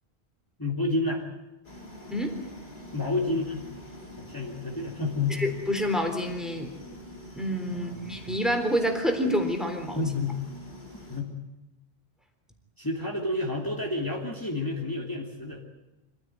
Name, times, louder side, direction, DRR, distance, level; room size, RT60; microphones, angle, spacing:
voice 1, 0.6-1.2 2.9-3.6 4.2-5.4 7.7-8.2 9.9-10.4 11.1-11.3 12.8-15.6, left 2 dB, 20° left, -2 dB, 3.1 m, -30 dB
sound 1, 1.6-11.2, left 1 dB, 50° left, 4.3 m, -46 dB
voice 2, 2.1-2.4 5.3-6.7 7.3-10.1, equal, ahead, 4 dB, 3.7 m, -28 dB
26.0 x 16.0 x 9.4 m, 1.0 s
omnidirectional pair, 1.1 m